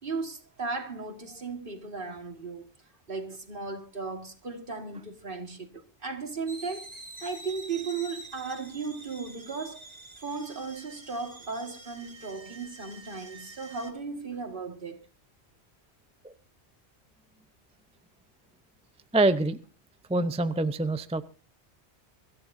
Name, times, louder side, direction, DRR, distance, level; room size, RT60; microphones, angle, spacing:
voice 1, 0.0-2.7 3.1-6.9 7.2-9.9 10.2-15.1, right 4 dB, 50° right, 2.0 m, -36 dB
sound 1, 6.5-13.9, right 2 dB, 35° right, 1.9 m, -47 dB
voice 2, 19.1-19.6 20.1-21.2, right 2 dB, 10° right, 0.5 m, -25 dB
24.5 x 14.0 x 2.7 m
omnidirectional pair, 1.1 m